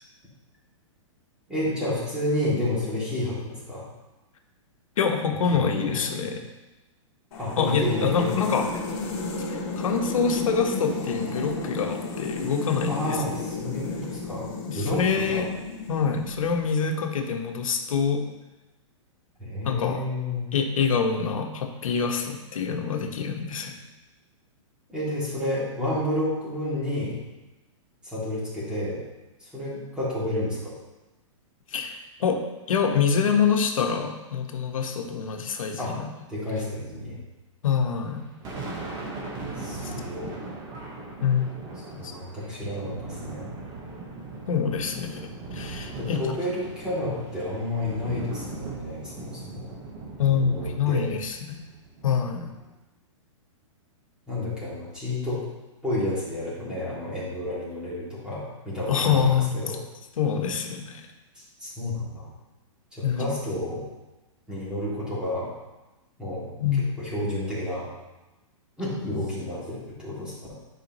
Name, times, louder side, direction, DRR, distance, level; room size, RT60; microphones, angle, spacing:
voice 1, 1.5-3.9 5.5-6.3 7.4-8.3 12.9-14.4 14.7-15.4 19.4-20.5 24.9-27.2 28.0-29.0 29.4-30.7 35.8-35.9 36.3-37.2 39.6-40.3 42.0-43.5 46.0-49.7 50.3-51.0 54.3-55.4 55.8-59.8 61.3-62.3 62.9-63.8 64.5-65.5 66.2-66.5 67.0-67.9 68.8-70.3, left 1 dB, 5° right, -9 dB, 2.6 m, -30 dB
voice 2, 5.0-6.4 7.6-8.7 9.4-13.2 14.6-15.5 15.9-18.2 19.6-20.0 20.5-23.7 31.7-32.4 32.7-36.1 37.6-38.2 39.8-39.9 41.2-41.5 41.9-42.1 44.5-46.2 50.2-51.4 52.0-52.5 58.9-59.6 60.2-61.0 63.0-63.3 66.6-66.8, left 6 dB, 80° left, 4 dB, 1.2 m, -25 dB
sound 1, 7.3-16.6, left 3 dB, 55° left, 2.2 m, -33 dB
Thunder, 38.1-52.7, right 3 dB, 25° right, 1.4 m, -39 dB
11.0 x 5.0 x 3.1 m, 1.1 s
hypercardioid pair, 155°, 17 cm